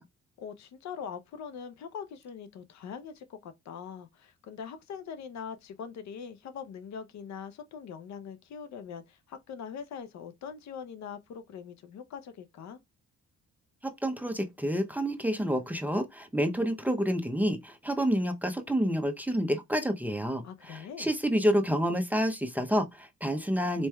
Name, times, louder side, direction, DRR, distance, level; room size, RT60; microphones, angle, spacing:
voice 1, 0.4-12.8 20.4-21.1, left 7 dB, 65° left, 0.6 m, -42 dB
voice 2, 13.8-23.9, equal, 5° right, 0.6 m, -29 dB
4.3 x 3.1 x 2.2 m
cardioid pair, 90°, 30 cm